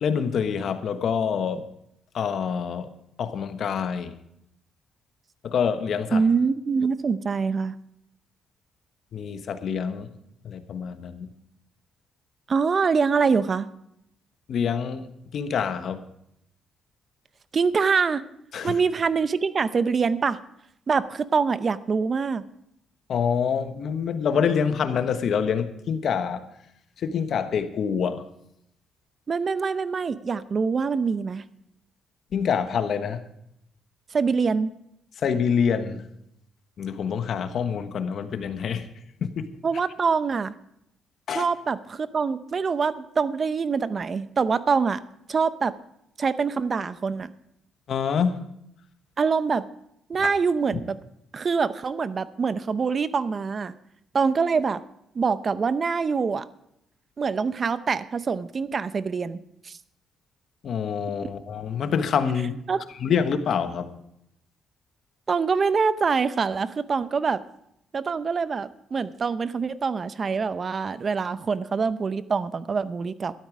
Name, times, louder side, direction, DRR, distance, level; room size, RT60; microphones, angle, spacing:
voice 1, 0.0-1.7 2.1-2.9 3.2-4.1 5.4-6.2 9.1-10.1 10.4-11.3 14.5-15.1 15.3-16.0 18.5-18.8 23.1-26.4 27.0-28.2 32.3-33.2 35.2-36.1 36.8-38.9 39.2-39.5 41.3-41.5 47.9-48.5 50.2-50.3 60.6-62.7 62.9-63.9, left 7 dB, 65° left, 9 dB, 1.2 m, -26 dB
voice 2, 6.1-7.8 12.5-13.7 17.5-18.2 18.6-20.4 20.9-22.4 29.3-31.4 34.1-34.7 39.6-40.5 41.3-45.0 45.3-45.7 46.2-47.3 49.2-49.6 50.1-51.0 51.3-53.8 54.1-54.8 55.1-56.5 57.2-59.8 61.2-61.3 62.7-62.8 65.3-67.4 67.9-73.3, right 5 dB, 40° right, 15 dB, 0.6 m, -24 dB
12.5 x 12.5 x 5.0 m, 0.77 s
cardioid pair, 90°, 0 cm